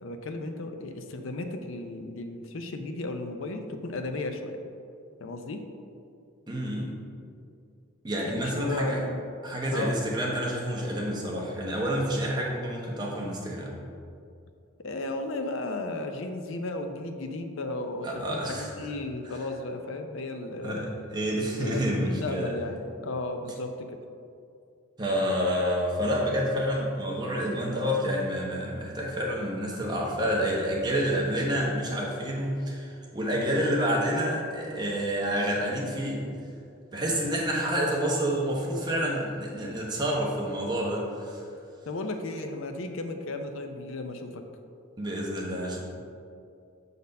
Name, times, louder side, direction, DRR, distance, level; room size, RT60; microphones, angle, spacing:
voice 1, 0.0-4.6 5.2-5.6 8.2-9.2 9.7-10.0 14.8-20.8 21.6-24.0 41.9-44.4, left 2 dB, 70° left, 6 dB, 0.5 m, -34 dB
voice 2, 6.5-6.9 8.0-9.0 9.4-13.7 18.0-18.9 20.6-22.5 25.0-36.2 36.9-41.4 45.0-45.8, equal, 20° right, -3 dB, 1.0 m, -28 dB
6.9 x 4.2 x 5.3 m, 2.4 s
head